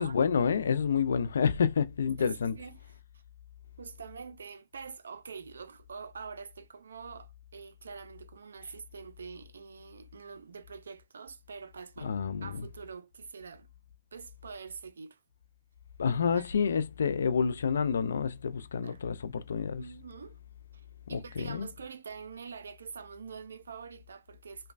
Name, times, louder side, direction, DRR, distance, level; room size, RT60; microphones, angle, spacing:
voice 1, 0.0-2.5 12.0-12.7 16.0-19.8 21.1-21.7, left 6 dB, 80° left, 0.3 m, -28 dB
voice 2, 2.2-2.8 3.8-13.7 14.1-15.2 16.1-16.7 18.8-19.0 19.8-20.4 20.7-24.7, right 5 dB, 85° right, 0.4 m, -45 dB
3.0 x 2.1 x 2.4 m
hypercardioid pair, 135°, 0 cm